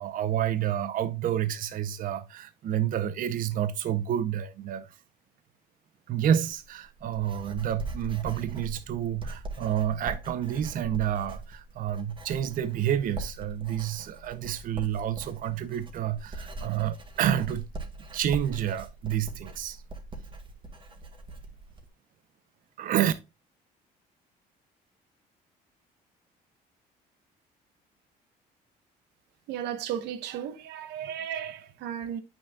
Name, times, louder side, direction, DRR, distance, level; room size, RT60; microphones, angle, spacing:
voice 1, 0.0-5.0 6.1-17.7 18.1-19.8 22.8-23.1, right 10 dB, 55° right, 0.6 m, -29 dB
Writing, 6.5-21.9, right 2 dB, 30° right, 2.0 m, -41 dB
voice 2, 29.5-32.2, right 9 dB, 85° right, 1.0 m, -35 dB
9.0 x 6.1 x 2.3 m
cardioid pair, 110°, 17 cm